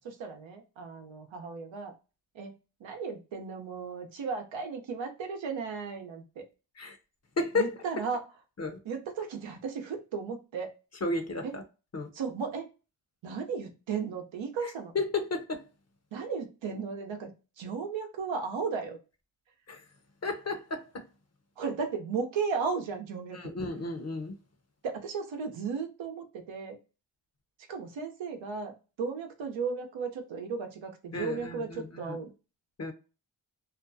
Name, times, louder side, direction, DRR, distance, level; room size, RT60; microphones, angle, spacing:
voice 1, 0.0-1.9 2.3-2.5 2.8-6.5 7.5-8.3 8.8-10.7 11.4-11.6 12.1-12.7 13.2-14.9 16.1-17.3 17.6-19.0 21.6-23.5 24.8-26.8 27.7-32.3, right 5 dB, 85° right, 0.7 m, -35 dB
voice 2, 7.4-7.7 8.6-8.8 11.0-11.6 11.9-12.1 15.0-15.6 20.2-20.8 23.4-24.3 31.1-32.2 32.8-32.9, left 3 dB, 35° left, 0.7 m, -32 dB
2.5 x 2.2 x 2.5 m
cardioid pair, 40°, 45 cm